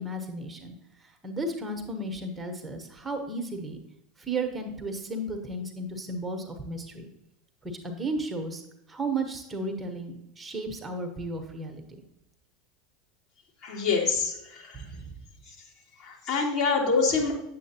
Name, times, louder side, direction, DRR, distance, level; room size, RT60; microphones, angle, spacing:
voice 1, 0.0-3.8 4.2-7.1 7.6-8.6 8.9-11.8 14.7-15.1, right 2 dB, 15° right, 4 dB, 1.2 m, -34 dB
voice 2, 13.6-14.7 16.0-17.3, left 4 dB, 50° left, -3 dB, 2.7 m, -25 dB
8.9 x 7.6 x 2.9 m, 0.85 s
hypercardioid pair, 80°, 0 cm